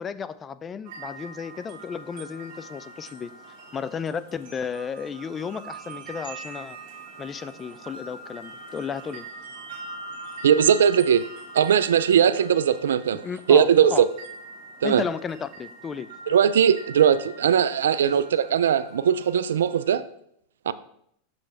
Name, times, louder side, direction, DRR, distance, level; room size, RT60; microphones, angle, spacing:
voice 1, 0.0-3.3 3.7-6.8 7.2-9.3 13.2-14.1 14.8-16.1 18.0-18.1, left 6 dB, 25° left, 14 dB, 0.4 m, -33 dB
sound 1, 0.8-19.9, right 3 dB, 60° right, 1.8 m, -43 dB
voice 2, 10.4-11.2 11.5-13.2 13.5-14.1 14.8-15.0 16.3-20.0 20.7-20.8, right 8 dB, 85° right, 15 dB, 0.3 m, -19 dB
6.9 x 5.3 x 3.4 m, 0.71 s
hypercardioid pair, 105°, 0 cm